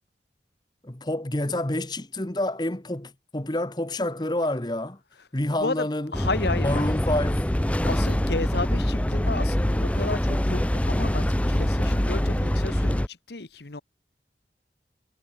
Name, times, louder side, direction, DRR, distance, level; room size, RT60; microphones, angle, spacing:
voice 1, 0.8-5.0 5.3-6.1 6.6-7.4, left 1 dB, 25° left, 1.3 m, -28 dB
voice 2, 6.1-6.7 7.8-13.8, left 3 dB, 65° left, 1.3 m, -32 dB
sound 1, 6.1-13.1, equal, 10° left, 0.5 m, -24 dB
head